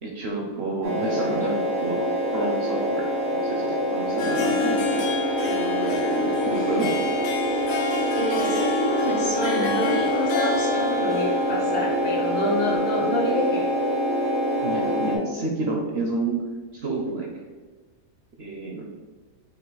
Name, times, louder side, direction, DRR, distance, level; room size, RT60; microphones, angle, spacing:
voice 1, 0.0-2.0 2.3-5.1 5.4-6.9 14.6-16.4 16.8-17.4 18.4-18.8, right 3 dB, 55° right, 0 dB, 0.7 m, -30 dB
sound 1, 0.8-15.2, equal, 75° right, 1.8 m, -25 dB
Harp, 4.0-12.7, left 3 dB, 65° left, 0.9 m, -29 dB
voice 2, 8.2-13.7, left 1 dB, 90° left, -3 dB, 1.8 m, -27 dB
5.4 x 2.4 x 4.0 m, 1.3 s
omnidirectional pair, 1.6 m